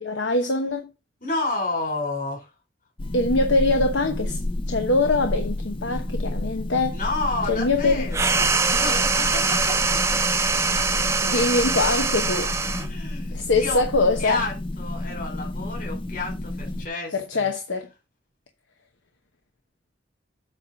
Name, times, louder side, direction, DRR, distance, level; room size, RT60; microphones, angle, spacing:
voice 1, 0.0-0.9 3.1-4.4 4.7-7.0 7.5-8.1 11.2-12.5 13.3-14.4 17.1-17.9, left 2 dB, 85° left, 1.0 m, -23 dB
voice 2, 1.2-2.5 6.9-10.2 10.7-10.8 12.8-13.8 14.2-17.5, left 3 dB, 45° left, 3.8 m, -30 dB
sound 1, 3.0-16.9, left 1 dB, 30° left, 0.5 m, -31 dB
sound 2, 8.1-12.9, right 4 dB, 15° right, 0.7 m, -23 dB
7.9 x 4.8 x 5.1 m
head